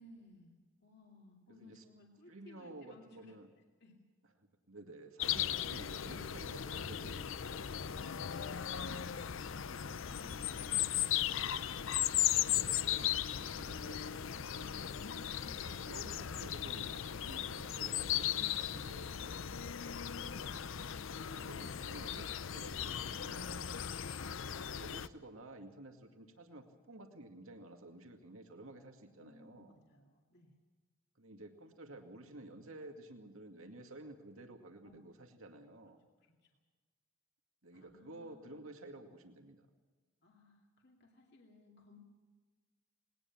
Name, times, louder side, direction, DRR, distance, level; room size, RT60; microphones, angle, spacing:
voice 1, 0.0-3.3 3.8-4.0 9.5-11.5 15.0-15.9 29.2-30.6 34.8-35.0 36.2-36.6 37.7-38.7 40.2-42.0, left 2 dB, 50° left, 0 dB, 2.5 m, -60 dB
voice 2, 1.5-1.8 2.3-3.5 4.4-7.6 12.4-15.0 15.6-19.4 20.0-20.5 21.3-23.6 24.2-29.7 31.2-36.0 37.6-39.7, right 2 dB, 75° right, 4 dB, 2.2 m, -53 dB
sound 1, 5.2-25.1, left 10 dB, 65° left, 0.6 m, -37 dB
20.5 x 18.5 x 7.3 m, 1.3 s
head